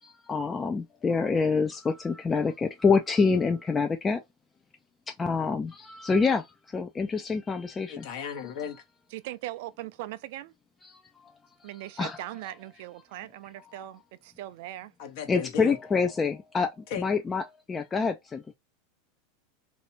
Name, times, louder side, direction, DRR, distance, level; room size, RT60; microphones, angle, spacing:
voice 1, 0.0-4.2 5.1-8.1 10.9-11.0 11.6-11.7 12.0-12.2 15.3-16.7 17.0-17.4 17.7-18.6, left 4 dB, 20° left, 0.4 m, -26 dB
voice 2, 7.9-8.8 15.0-15.8 16.9-17.0, left 7 dB, 60° left, 1.0 m, -35 dB
voice 3, 9.1-10.5 11.6-14.9, right 15 dB, 60° right, 0.4 m, -40 dB
3.2 x 2.7 x 2.8 m
hypercardioid pair, 90°, 0 cm